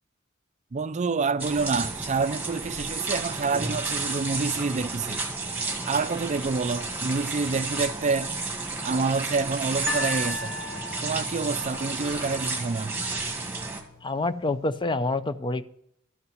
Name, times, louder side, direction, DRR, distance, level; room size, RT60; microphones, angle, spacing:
voice 1, 0.7-5.2 5.9-8.3 8.8-10.5 11.0-13.0, right 4 dB, 35° right, 0.4 m, -27 dB
sound 1, 1.4-13.8, right 3 dB, 10° right, 1.8 m, -32 dB
sound 2, 9.9-13.0 13.8-13.9, left 2 dB, 85° left, 3.5 m, -36 dB
voice 2, 14.0-15.6, left 2 dB, 25° left, 0.5 m, -27 dB
13.5 x 5.7 x 7.7 m
head